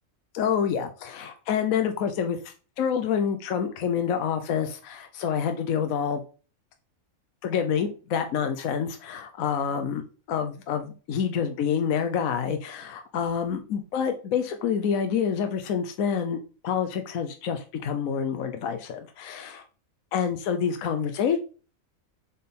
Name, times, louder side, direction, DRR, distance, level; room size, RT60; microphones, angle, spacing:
voice 1, 0.3-6.2 7.4-19.6 20.1-21.4, left 7 dB, 75° left, 7 dB, 1.1 m, -27 dB
7.3 x 3.7 x 4.3 m, 0.36 s
omnidirectional pair, 1.5 m